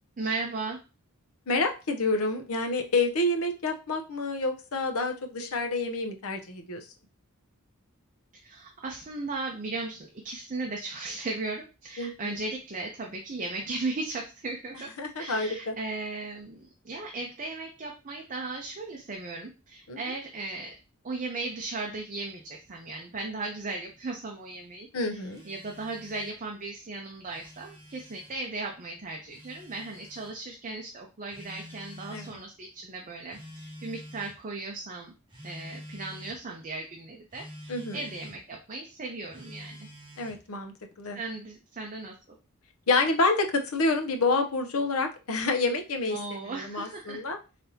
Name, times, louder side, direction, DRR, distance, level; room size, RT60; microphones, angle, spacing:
voice 1, 0.2-0.8 8.3-14.9 15.2-20.8 21.0-35.1 35.4-39.9 41.1-42.4 46.1-47.2, right 3 dB, 35° right, 0 dB, 0.6 m, -37 dB
voice 2, 1.5-6.9 12.0-12.3 15.0-15.7 19.9-20.0 24.9-25.4 32.1-32.4 37.7-38.0 40.2-41.2 42.9-46.2 46.5-47.4, left 3 dB, 70° left, 5 dB, 0.7 m, -28 dB
Telephone, 25.3-26.4 27.1-28.4 29.3-30.4 31.3-32.4 33.3-34.4 35.3-36.4 37.3-38.4 39.3-40.5, equal, 20° right, 1.2 m, -47 dB
4.0 x 3.4 x 2.7 m, 0.31 s
head